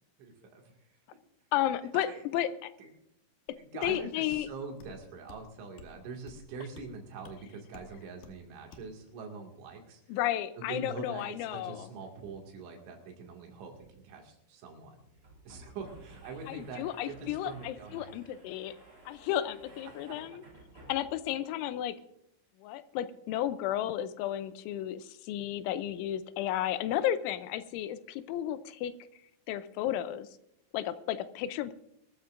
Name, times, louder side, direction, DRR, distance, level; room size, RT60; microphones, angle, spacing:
voice 1, 0.2-0.6 1.9-2.4 2.8-2.9 3.6-10.0 10.7-15.0 15.5-18.2 19.9-20.2, right 4 dB, 80° right, 1 dB, 4.6 m, -44 dB
voice 2, 1.5-2.7 3.8-4.5 10.1-11.9 16.5-18.8 19.1-20.4 20.9-22.0 22.6-28.9 29.5-30.3 30.7-31.7, left 12 dB, 90° left, 13 dB, 3.1 m, -33 dB
sound 1, 3.5-3.6 3.8-4.0 4.3-4.5 4.8-5.0 5.3-5.4 5.8-5.9 6.3-6.4 6.8-6.9 7.2-7.4 7.7-7.9 8.2-8.4 8.7-8.9, left 4 dB, 65° left, 2.4 m, -51 dB
sound 2, 13.8-13.9 14.2-14.3 15.0-21.4, right 2 dB, 25° right, 2.5 m, -54 dB
23.5 x 13.5 x 2.6 m, 0.77 s
omnidirectional pair, 5.3 m